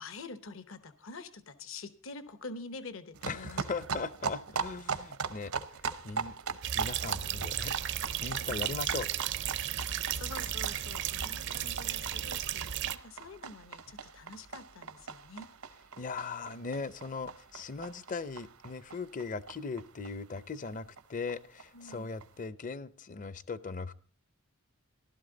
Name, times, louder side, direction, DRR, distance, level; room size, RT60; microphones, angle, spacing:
voice 1, 0.0-3.6 8.5-8.8 10.1-15.5 21.7-22.1, left 3 dB, 65° left, 12 dB, 0.9 m, -46 dB
sound 1, 3.1-20.4 20.7-20.8 21.0-21.1 21.3-21.4 21.6-22.2, right 5 dB, 80° right, 0.8 m, -40 dB
voice 2, 3.3-5.5 5.8-6.4 6.7-9.1 9.4-9.6 16.0-23.9, left 4 dB, 35° left, 17 dB, 0.6 m, -39 dB
sound 2, 6.6-13.0, right 10 dB, 55° right, 0.5 m, -34 dB
15.0 x 12.0 x 3.9 m, 0.41 s
head